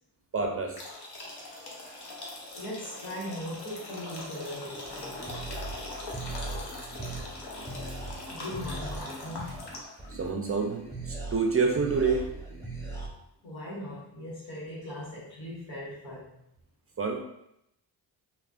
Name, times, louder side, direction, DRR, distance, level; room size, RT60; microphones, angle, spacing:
voice 1, 0.3-0.8 10.1-10.8 11.1-12.2 17.0-17.2, right 4 dB, 30° right, 2 dB, 0.4 m, -27 dB
sound 1, 0.8-10.1, left 2 dB, 60° left, 0.9 m, -41 dB
voice 2, 2.5-5.2 8.3-9.6 13.4-16.4, left 1 dB, 90° left, -7 dB, 1.0 m, -39 dB
sound 2, 4.8-13.1, right 2 dB, 5° left, 0.9 m, -40 dB
3.3 x 2.2 x 2.4 m, 0.81 s
supercardioid pair, 45°, 46 cm